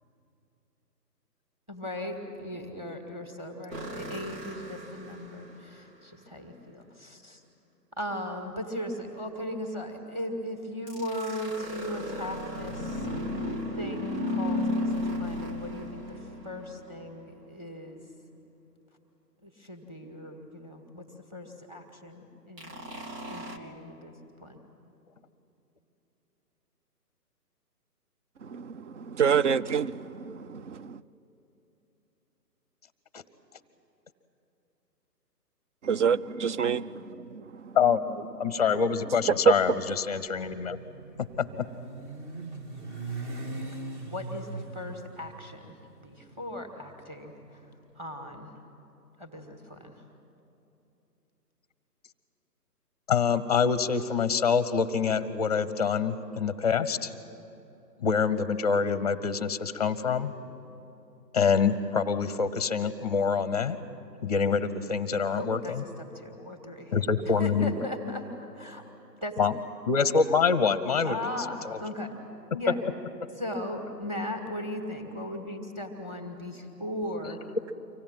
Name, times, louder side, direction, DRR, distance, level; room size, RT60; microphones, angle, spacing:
voice 1, 1.7-7.4 8.0-13.1 13.7-16.2 16.4-18.0 19.4-22.8 23.3-24.1 24.4-24.6 44.1-45.8 46.0-47.7 48.0-48.5 49.2-49.9 65.3-66.9 67.2-68.3 68.5-68.8 69.2-69.5 71.0-72.1 72.5-72.8 73.4-77.4, left 1 dB, 10° right, 3 dB, 1.9 m, -38 dB
sound 1, 3.7-5.8 10.9-17.2 22.6-23.6, left 1 dB, 90° right, 2.6 m, -34 dB
voice 2, 28.4-31.0 35.8-37.7 39.5-39.6, right 7 dB, 50° right, 16 dB, 0.6 m, -27 dB
voice 3, 38.4-40.8 41.4-41.7 53.1-57.1 58.0-60.3 61.3-63.8 64.2-65.8 66.9-67.8 69.4-69.5 69.9-71.2 71.6-71.8, left 6 dB, 25° left, 14 dB, 0.7 m, -26 dB
Motorcycle, 39.9-48.1, right 3 dB, 30° right, 1.4 m, -41 dB
25.0 x 16.5 x 8.9 m, 2.9 s
figure-of-eight pair, 145°, 49 cm